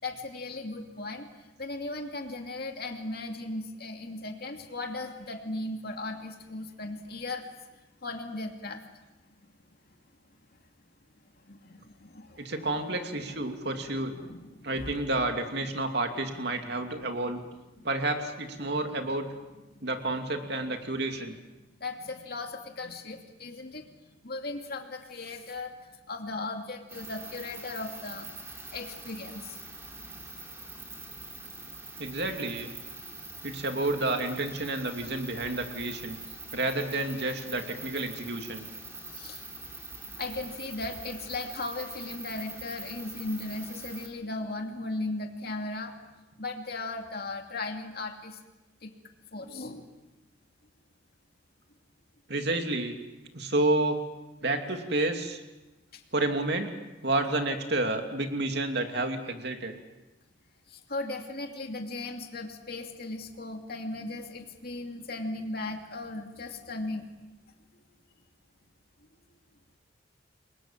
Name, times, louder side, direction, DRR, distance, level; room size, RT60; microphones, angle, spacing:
voice 1, 0.0-1.3 1.6-7.5 8.0-8.8 11.4-12.8 13.5-15.0 17.8-17.9 19.7-19.9 21.8-23.8 24.2-25.7 26.1-28.3 28.7-29.6 39.1-39.5 40.2-45.9 46.4-48.4 48.8-48.9 49.3-49.9 55.9-56.0 60.7-67.0, left 2 dB, 50° left, 3 dB, 2.6 m, -37 dB
voice 2, 12.4-14.1 14.6-17.4 17.8-19.3 19.8-21.3 32.0-32.7 33.4-36.2 36.5-38.6 52.3-53.0 53.3-54.0 54.4-55.4 56.1-56.7 57.0-59.8, right 2 dB, 55° right, 5 dB, 2.8 m, -30 dB
sound 1, 26.9-44.1, right 3 dB, 15° right, 3.5 m, -43 dB
29.5 x 22.5 x 7.5 m, 1.1 s
head